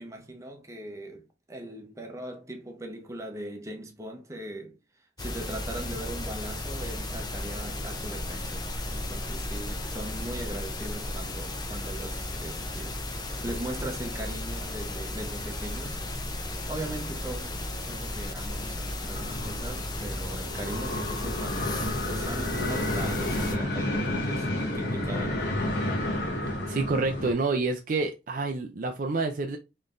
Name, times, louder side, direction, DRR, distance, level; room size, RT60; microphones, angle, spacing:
voice 1, 0.0-4.8 5.2-16.0 16.7-25.6, right 1 dB, 15° right, 0.7 m, -39 dB
sound 1, 5.2-23.5, left 1 dB, 20° left, 0.6 m, -34 dB
sound 2, 19.1-27.3, left 1 dB, 60° left, 1.2 m, -31 dB
voice 2, 26.7-29.6, right 3 dB, 45° right, 0.4 m, -28 dB
3.8 x 3.2 x 2.5 m
head